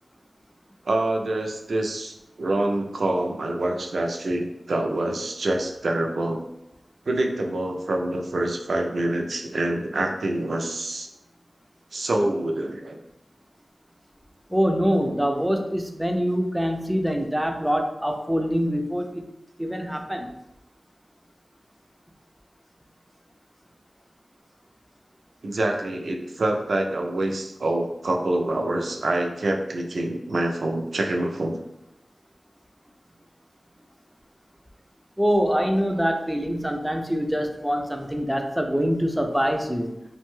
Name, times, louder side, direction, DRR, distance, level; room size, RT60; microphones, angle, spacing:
voice 1, 0.9-6.4 7.1-11.1 11.9-13.0 25.4-31.6, right 1 dB, 80° right, 3 dB, 0.3 m, -26 dB
voice 2, 14.5-19.3 19.6-20.3 35.2-39.9, equal, 5° right, 4 dB, 0.3 m, -24 dB
2.6 x 2.2 x 3.0 m, 0.88 s
wide cardioid pair, 80°, 0 cm